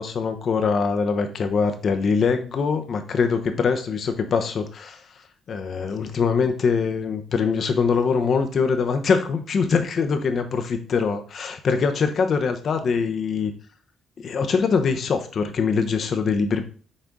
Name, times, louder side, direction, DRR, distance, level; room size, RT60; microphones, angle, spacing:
voice 1, 0.0-5.0 5.5-13.5 14.2-16.6, left 5 dB, 55° left, 7 dB, 1.0 m, -23 dB
6.6 x 4.4 x 3.7 m, 0.40 s
cardioid pair, 90°, 0 cm